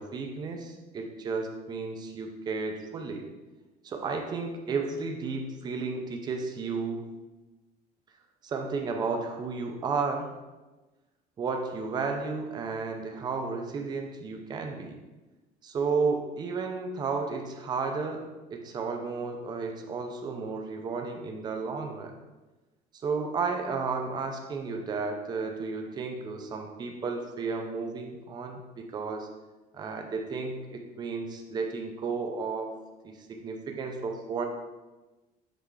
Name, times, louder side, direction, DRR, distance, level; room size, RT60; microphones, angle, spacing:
voice 1, 0.0-3.3 3.8-7.1 8.4-10.3 11.4-15.0 15.6-22.1 22.9-29.3 29.7-32.8 33.0-34.4, right 4 dB, 25° right, 3 dB, 0.5 m, -33 dB
5.9 x 3.3 x 4.7 m, 1.1 s
cardioid pair, 175°, 17 cm